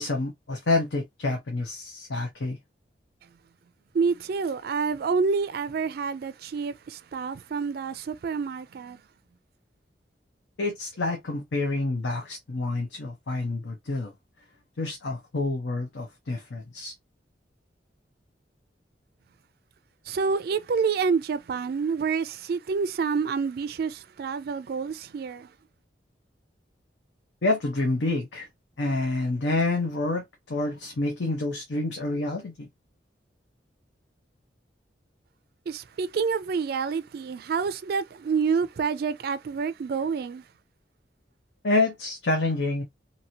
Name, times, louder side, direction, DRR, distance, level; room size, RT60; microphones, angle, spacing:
voice 1, 0.0-2.6 10.6-14.1 14.8-16.9 27.4-28.5 28.8-32.7 41.6-42.8, left 2 dB, 85° left, 0.7 m, -28 dB
voice 2, 3.9-9.0 20.1-25.5 35.7-40.4, right 5 dB, 60° right, 0.3 m, -28 dB
2.9 x 2.6 x 2.6 m
head